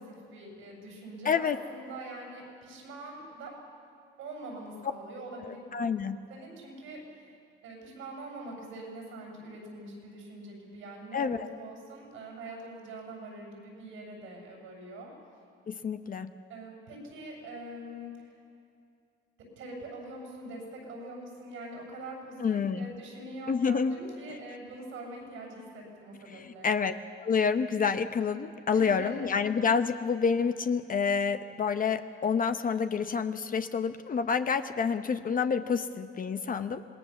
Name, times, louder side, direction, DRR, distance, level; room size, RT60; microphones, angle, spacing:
voice 1, 0.0-3.5 4.2-7.3 7.6-15.1 16.5-18.4 19.6-26.7 28.7-29.4, right 1 dB, 90° right, 0 dB, 7.3 m, -44 dB
voice 2, 1.2-1.6 5.4-6.2 11.1-11.5 15.7-16.3 22.4-22.9 23.5-23.9 26.3-36.9, left 6 dB, 45° left, 9 dB, 0.9 m, -28 dB
26.5 x 19.0 x 7.2 m, 2.6 s
cardioid pair, 90°, 20 cm